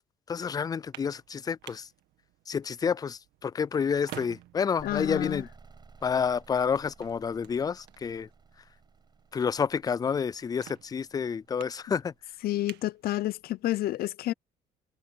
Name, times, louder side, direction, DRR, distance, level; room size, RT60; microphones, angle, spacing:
voice 1, 0.3-1.9 2.5-5.5 6.0-8.3 9.3-12.1, left 6 dB, 20° left, 0.3 m, -29 dB
sound 1, 0.6-13.7, right 15 dB, 80° right, 1.7 m, -52 dB
voice 2, 4.8-5.4 12.4-14.3, left 15 dB, 65° left, 0.6 m, -30 dB
sound 2, 4.8-12.3, right 4 dB, 25° right, 6.2 m, -56 dB
cardioid pair, 110°, 17 cm